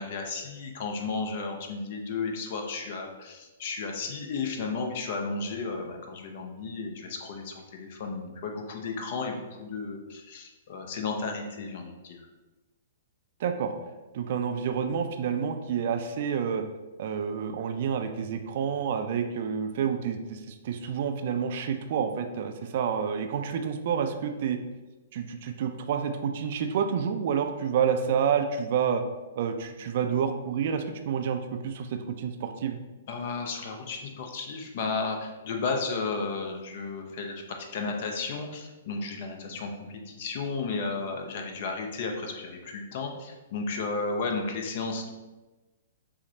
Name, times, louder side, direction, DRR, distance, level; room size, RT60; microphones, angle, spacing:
voice 1, 0.0-12.2 33.1-45.1, left 4 dB, 50° left, 3 dB, 0.6 m, -33 dB
voice 2, 13.4-13.7 14.1-16.6 17.0-24.6 25.1-29.0 29.4-32.8, right 7 dB, 50° right, 6 dB, 0.4 m, -29 dB
5.8 x 2.1 x 2.7 m, 1.2 s
figure-of-eight pair, 115°, 0 cm